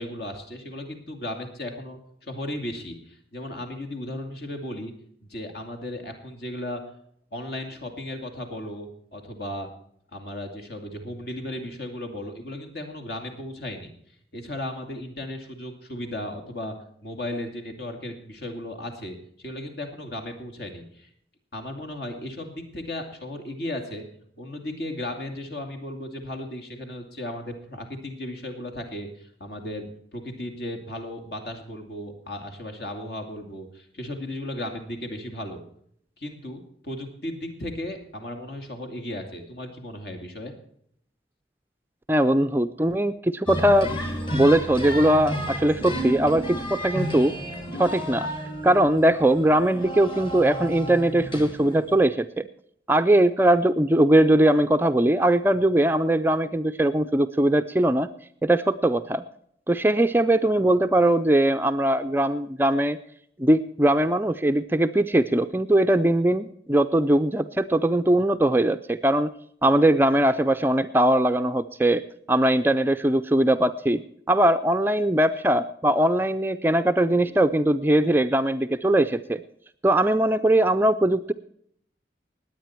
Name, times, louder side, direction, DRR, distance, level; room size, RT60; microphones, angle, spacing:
voice 1, 0.0-4.9 5.3-6.8 7.3-9.7 10.1-13.9 14.3-16.7 17.0-21.1 21.5-24.0 24.4-35.6 36.2-40.5, left 1 dB, 60° left, 5 dB, 2.6 m, -35 dB
voice 2, 42.1-43.9 44.3-47.3 47.8-48.3 48.6-52.5 52.9-58.1 58.4-59.2 59.7-63.0 63.4-69.3 69.6-72.0 72.3-74.0 74.3-79.4 79.8-81.3, right 1 dB, 10° right, 10 dB, 0.4 m, -20 dB
sound 1, 43.5-52.1, equal, 30° left, 2.1 m, -32 dB
19.5 x 9.0 x 4.5 m, 0.67 s
head